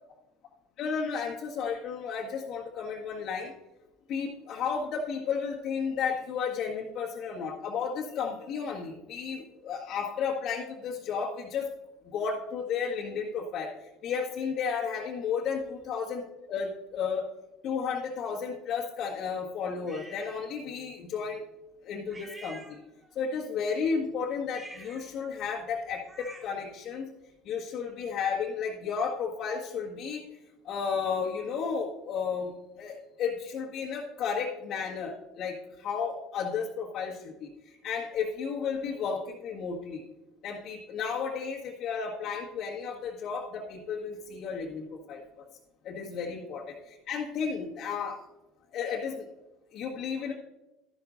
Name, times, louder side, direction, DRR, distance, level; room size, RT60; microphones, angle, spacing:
voice 1, 0.8-3.5 4.1-11.7 12.0-17.2 17.6-21.4 21.8-22.8 23.1-27.1 27.4-30.2 30.6-40.0 40.4-45.5 45.8-48.3 48.7-49.2 49.7-50.3, left 6 dB, 55° left, -4 dB, 1.7 m, -33 dB
sound 1, 19.9-20.4 22.1-23.2 24.4-26.7, right 1 dB, 25° right, 3.8 m, -48 dB
13.0 x 12.0 x 2.6 m, 0.97 s
hypercardioid pair, 70°, 0 cm